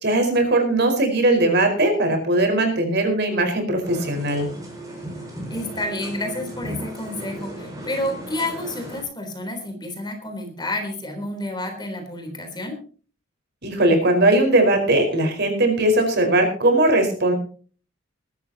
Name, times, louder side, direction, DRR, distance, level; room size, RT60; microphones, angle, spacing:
voice 1, 0.0-4.4 13.6-17.3, right 1 dB, 50° right, 5 dB, 4.8 m, -19 dB
sound 1, 3.8-9.0, right 1 dB, 15° right, 6.5 m, -36 dB
voice 2, 5.5-12.8, left 1 dB, 20° left, 5 dB, 3.7 m, -30 dB
21.5 x 13.0 x 2.9 m, 0.40 s
head